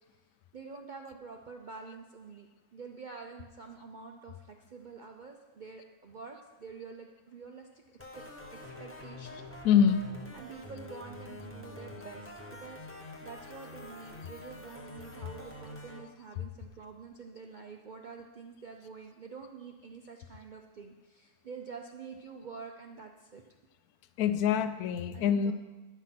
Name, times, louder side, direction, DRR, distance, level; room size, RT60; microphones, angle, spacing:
voice 1, 0.5-8.2 8.5-9.4 10.3-23.4 25.1-25.5, right 5 dB, 60° right, 2 dB, 0.5 m, -47 dB
sound 1, 8.0-16.0, left 2 dB, 10° left, 0.7 m, -46 dB
voice 2, 9.6-10.1 24.2-25.5, left 8 dB, 85° left, 11 dB, 1.1 m, -25 dB
10.0 x 5.7 x 5.8 m, 1.2 s
omnidirectional pair, 1.6 m